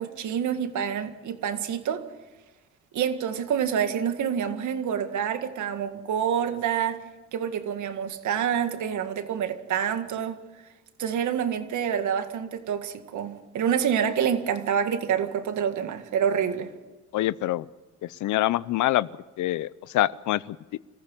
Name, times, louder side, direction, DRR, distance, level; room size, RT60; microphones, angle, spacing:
voice 1, 0.0-2.0 2.9-7.0 7.3-10.4 11.0-16.7, right 8 dB, 75° right, 8 dB, 1.9 m, -27 dB
voice 2, 17.1-17.6 18.2-19.1 19.4-19.7 19.9-20.6, left 15 dB, 75° left, 19 dB, 0.6 m, -24 dB
27.5 x 15.0 x 7.3 m, 1.2 s
cardioid pair, 90°, 30 cm